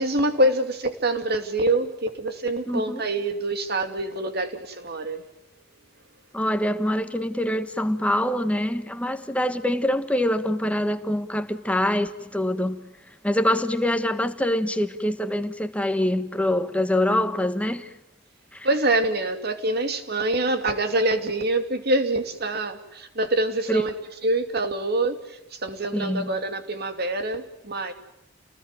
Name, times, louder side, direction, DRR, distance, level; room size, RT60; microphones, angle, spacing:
voice 1, 0.0-5.2 18.6-23.9 24.2-27.9, right 2 dB, 55° right, 2.7 m, -25 dB
voice 2, 2.7-3.0 6.3-12.8 13.2-17.9 18.5-18.7 23.7-23.8 25.9-26.3, left 1 dB, 5° left, 1.4 m, -25 dB
29.5 x 19.5 x 9.1 m
head